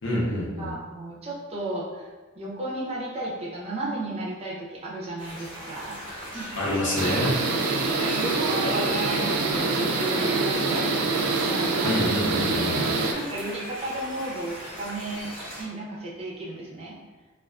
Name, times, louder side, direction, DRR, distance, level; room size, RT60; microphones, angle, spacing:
voice 1, 0.0-0.7 6.6-7.3 11.8-13.0, left 1 dB, 60° left, -5 dB, 0.7 m, -27 dB
voice 2, 0.6-6.5 8.0-11.0 11.5-12.0 13.1-15.3 15.6-16.9, right 1 dB, 30° right, -4 dB, 0.5 m, -33 dB
sound 1, 5.2-15.6, equal, 20° left, 0.9 m, -39 dB
sound 2, 7.0-13.1, right 3 dB, 90° right, 0.4 m, -25 dB
2.3 x 2.3 x 2.3 m, 1.3 s
head